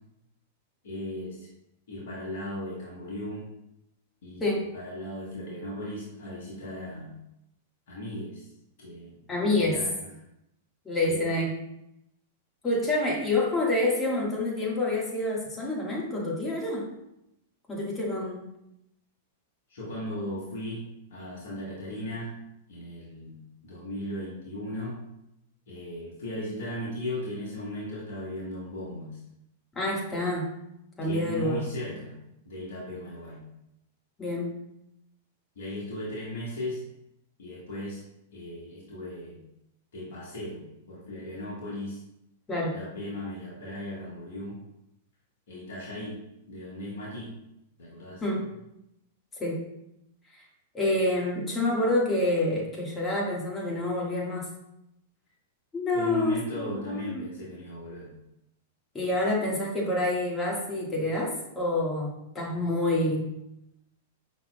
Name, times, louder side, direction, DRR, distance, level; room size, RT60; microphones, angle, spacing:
voice 1, 0.8-1.5 1.9-3.4 4.2-7.1 7.9-8.5 8.8-10.1 11.0-11.3 19.7-20.8 21.1-22.3 22.7-25.0 25.7-29.2 31.0-32.2 32.4-33.4 35.5-36.8 37.4-38.0 38.3-39.4 39.9-42.0 42.7-44.6 45.5-46.2 46.5-47.3 47.8-48.2 55.9-58.1, left 1 dB, 65° left, -6 dB, 1.4 m, -37 dB
voice 2, 9.3-9.8 10.8-11.5 12.6-16.9 17.7-18.5 29.7-30.5 31.0-31.7 34.2-34.5 42.5-42.8 48.2-48.5 49.4-49.6 50.3-50.4 50.7-54.5 55.7-57.2 58.9-63.3, left 2 dB, 20° left, -3 dB, 1.5 m, -27 dB
5.6 x 3.4 x 2.2 m, 0.84 s
hypercardioid pair, 105°, 0 cm